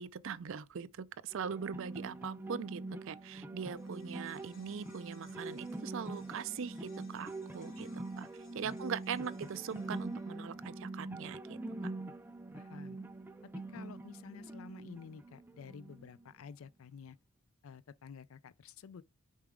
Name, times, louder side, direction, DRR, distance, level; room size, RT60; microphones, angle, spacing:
voice 1, 0.0-8.3 8.5-11.9, right 7 dB, 60° right, 0.4 m, -41 dB
sound 1, 1.3-16.3, right 2 dB, 10° right, 0.4 m, -44 dB
sound 2, 3.7-12.2 12.5-12.6, left 3 dB, 40° left, 1.3 m, -64 dB
voice 2, 12.5-13.0 13.4-17.2 17.6-19.0, left 6 dB, 65° left, 0.4 m, -51 dB
6.4 x 4.8 x 3.6 m
head